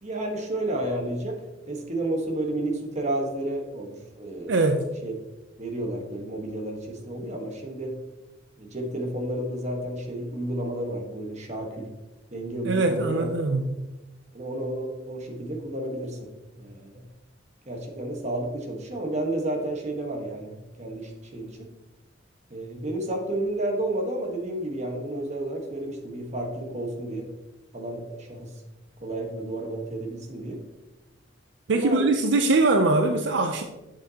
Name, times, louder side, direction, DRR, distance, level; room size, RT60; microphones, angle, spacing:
voice 1, 0.0-5.1 5.6-8.0 8.6-11.9 12.3-13.3 14.3-16.3 16.6-17.1 17.7-21.7 22.5-27.3 27.7-28.5 29.0-30.6 31.7-32.0, right 1 dB, 35° right, 2 dB, 1.3 m, -31 dB
voice 2, 4.5-4.8 12.6-13.8 31.7-33.6, right 3 dB, 70° right, 6 dB, 0.5 m, -22 dB
8.3 x 6.9 x 2.9 m, 1.1 s
head